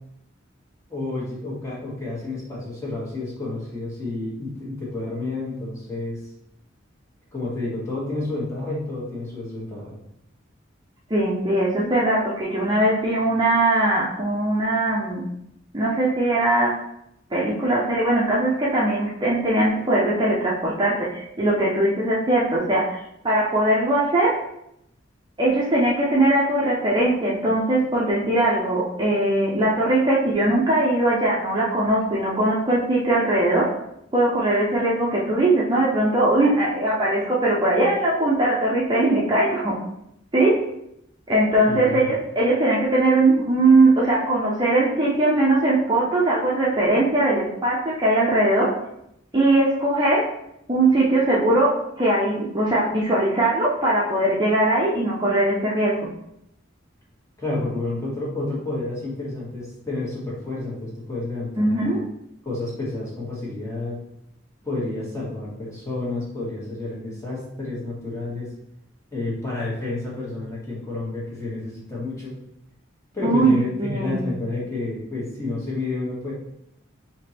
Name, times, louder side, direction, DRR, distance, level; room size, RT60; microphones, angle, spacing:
voice 1, 0.9-6.2 7.3-9.9 41.7-42.1 57.4-61.9 62.4-64.0 64.6-68.5 69.1-72.3 73.1-76.3, left 2 dB, 15° left, -6 dB, 1.4 m, -30 dB
voice 2, 11.1-15.3 15.7-16.8 17.3-23.0 23.2-24.4 25.4-33.7 34.1-39.8 40.3-40.6 41.3-48.7 49.3-50.3 50.7-56.1 61.6-62.0 73.2-74.2, right 2 dB, 25° right, -6 dB, 0.6 m, -20 dB
3.6 x 2.9 x 4.2 m, 0.79 s
head